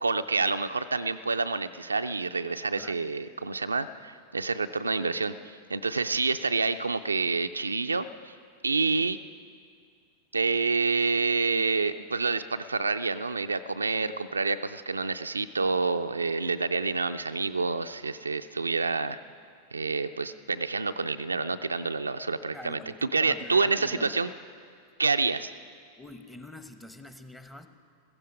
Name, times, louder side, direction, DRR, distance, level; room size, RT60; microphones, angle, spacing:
voice 1, 0.0-8.3 8.6-9.2 10.3-19.2 19.7-24.3 25.0-25.5, right 4 dB, 80° right, 9 dB, 0.4 m, -28 dB
voice 2, 22.5-24.2 26.0-27.7, left 1 dB, 5° left, 8 dB, 0.9 m, -45 dB
16.0 x 14.5 x 5.0 m, 2.2 s
figure-of-eight pair, 90°, 0 cm